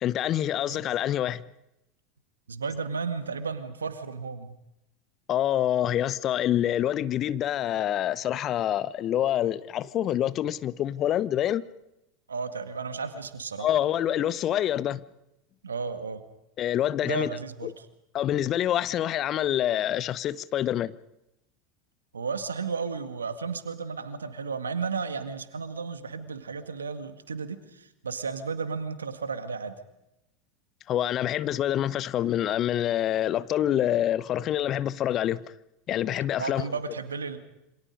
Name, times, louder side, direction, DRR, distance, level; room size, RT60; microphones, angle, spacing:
voice 1, 0.0-1.4 5.3-11.7 13.6-15.0 16.6-17.3 17.6-17.7 18.1-20.9 30.9-35.4 35.9-36.7, left 11 dB, 40° left, 0.8 m, -26 dB
voice 2, 2.5-4.6 12.3-13.7 15.6-16.2 17.0-17.9 22.1-29.8 36.4-37.4, right 5 dB, 80° right, 1.9 m, -33 dB
28.0 x 26.0 x 5.2 m
figure-of-eight pair, 80°, 0 cm